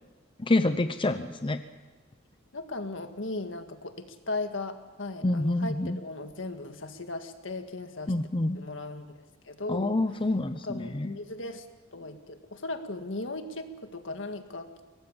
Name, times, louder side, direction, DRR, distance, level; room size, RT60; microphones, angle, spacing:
voice 1, 0.4-1.6 5.2-6.0 8.1-8.6 9.7-11.2, left 2 dB, 25° left, 9 dB, 0.7 m, -27 dB
voice 2, 2.5-8.1 8.6-10.0 10.6-11.7 11.9-14.7, left 2 dB, 75° left, 7 dB, 1.9 m, -37 dB
23.0 x 19.0 x 7.2 m, 1.3 s
head